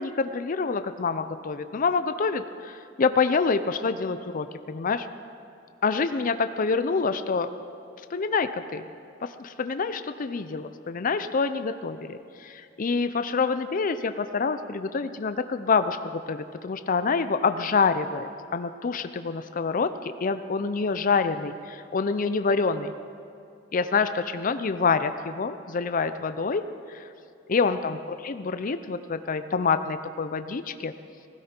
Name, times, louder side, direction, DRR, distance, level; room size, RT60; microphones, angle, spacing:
voice 1, 0.0-5.1 5.8-7.5 8.1-8.8 9.2-22.9 23.7-27.0 27.5-30.9, left 4 dB, 45° left, 10 dB, 0.5 m, -27 dB
16.0 x 16.0 x 4.4 m, 2.5 s
head